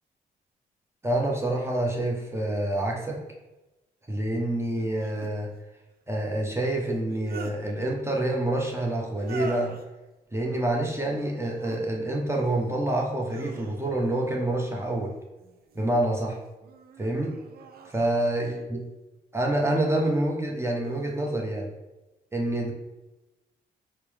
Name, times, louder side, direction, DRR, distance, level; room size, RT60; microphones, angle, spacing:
voice 1, 1.0-3.2 4.1-5.5 6.1-9.7 10.3-15.1 15.7-16.4 17.0-17.3 17.8-18.8 19.3-21.7 22.3-22.7, right 1 dB, 15° right, -1 dB, 0.8 m, -27 dB
sound 1, 2.3-2.4 4.7-5.3 6.9-7.6 9.1-9.9 11.3-11.8 12.3-12.8 13.2-14.1 15.4-16.0 16.6-18.6 19.7-20.2 20.8-21.3, right 4 dB, 50° right, 0.4 m, -44 dB
4.3 x 2.1 x 3.4 m, 1.0 s
hypercardioid pair, 45°, 20 cm